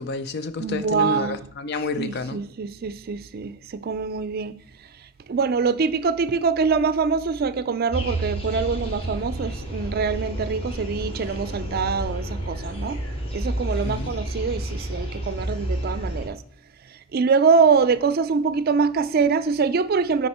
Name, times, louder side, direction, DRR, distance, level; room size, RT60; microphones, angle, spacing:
voice 1, 0.0-2.4 13.8-14.1, left 3 dB, 55° left, 0.5 m, -29 dB
voice 2, 0.6-1.4 2.0-4.6 5.3-13.0 13.3-16.4 16.9-20.3, right 5 dB, 50° right, 0.4 m, -24 dB
sound 1, 7.9-16.3, right 1 dB, 30° left, 1.7 m, -30 dB
9.7 x 4.2 x 4.3 m
head